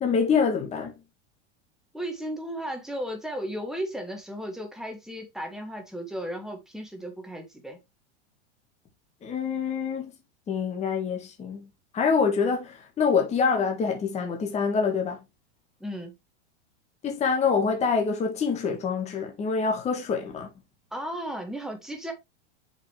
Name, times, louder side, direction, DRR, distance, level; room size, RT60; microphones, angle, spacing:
voice 1, 0.0-0.9 9.2-10.2 10.5-11.7 11.9-15.2 17.0-20.5, left 5 dB, 20° left, 1.5 m, -26 dB
voice 2, 1.9-7.8 15.8-16.1 20.9-22.1, equal, ahead, 1.6 m, -35 dB
6.7 x 5.2 x 3.2 m
supercardioid pair, 150°, 34 cm